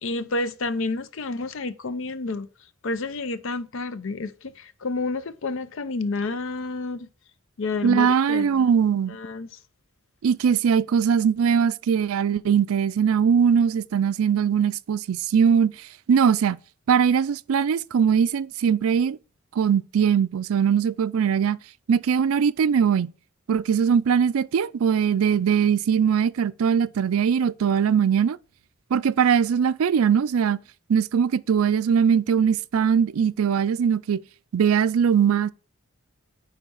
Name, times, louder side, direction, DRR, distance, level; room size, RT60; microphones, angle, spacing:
voice 1, 0.0-2.5 2.8-7.1 7.6-8.7 9.1-9.5, left 3 dB, 65° left, 0.6 m, -30 dB
voice 2, 7.8-9.2 10.2-15.7 16.1-16.6 16.9-19.2 19.6-21.6 21.9-23.1 23.5-28.4 28.9-30.6 30.9-34.2 34.5-35.5, right 7 dB, 80° right, 0.4 m, -21 dB
9.3 x 3.3 x 5.4 m
head